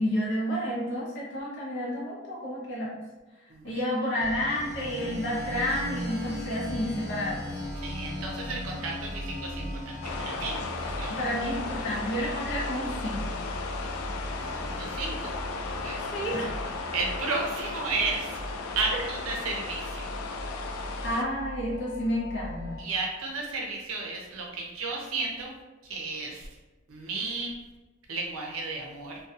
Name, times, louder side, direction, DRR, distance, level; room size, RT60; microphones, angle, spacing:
voice 1, 0.0-3.0 3.6-7.5 11.1-13.3 16.0-16.5 21.0-22.8, equal, 55° left, -6 dB, 0.8 m, -30 dB
sound 1, 4.2-22.8, equal, 15° right, 0.6 m, -38 dB
voice 2, 7.8-10.0 10.2-11.2 11.7-11.8 13.8-13.9 14.4-15.3 15.8-16.0 16.9-18.4 18.8-20.1 22.8-25.5 25.8-26.5 26.9-27.6 28.1-29.2, right 3 dB, 75° right, 0 dB, 0.6 m, -33 dB
sound 2, 10.0-21.2, left 3 dB, 80° left, 0.3 m, -36 dB
2.6 x 2.3 x 2.4 m, 1.2 s
head